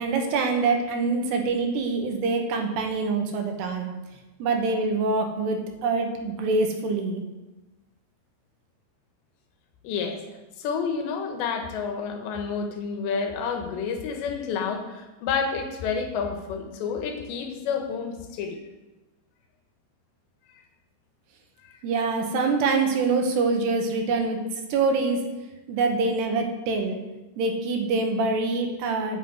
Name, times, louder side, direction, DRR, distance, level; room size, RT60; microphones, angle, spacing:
voice 1, 0.0-3.9 4.4-7.2 21.8-24.4 24.7-25.2 25.7-27.0 27.4-29.2, right 3 dB, 75° right, 3 dB, 3.4 m, -25 dB
voice 2, 9.8-10.2 10.6-18.6, left 5 dB, 85° left, 4 dB, 3.5 m, -29 dB
9.3 x 7.5 x 8.0 m, 1.1 s
omnidirectional pair, 5.0 m